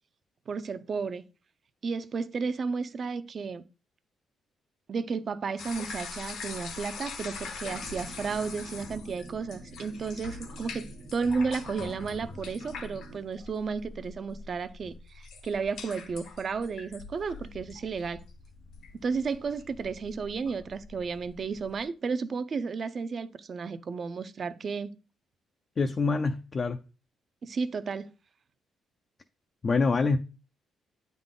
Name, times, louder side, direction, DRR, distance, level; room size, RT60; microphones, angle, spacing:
voice 1, 0.5-1.2 1.8-3.6 4.9-18.2 19.0-25.0 27.4-28.1, right 5 dB, 40° right, 0.5 m, -33 dB
sound 1, 5.6-21.8, left 4 dB, 75° left, 1.1 m, -43 dB
sound 2, 7.6-13.2, right 3 dB, 70° right, 1.3 m, -49 dB
voice 2, 25.8-26.8 29.6-30.2, left 4 dB, 35° left, 0.4 m, -25 dB
8.8 x 3.7 x 3.8 m
cardioid pair, 125°, 0 cm